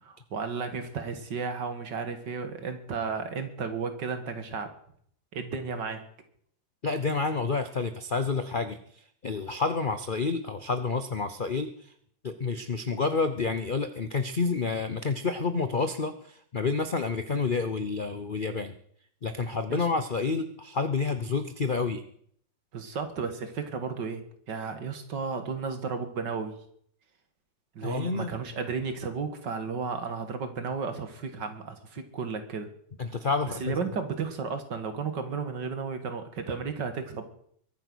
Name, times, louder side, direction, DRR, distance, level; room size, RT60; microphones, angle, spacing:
voice 1, 0.0-4.7 5.3-6.0 19.7-19.8 22.7-26.6 27.8-32.7 33.6-37.2, right 5 dB, 60° right, 8 dB, 2.4 m, -33 dB
voice 2, 6.8-11.9 12.2-18.7 19.2-22.0 27.8-28.3 33.0-33.8, left 4 dB, 55° left, 10 dB, 0.5 m, -29 dB
22.5 x 9.2 x 6.3 m, 0.64 s
omnidirectional pair, 2.1 m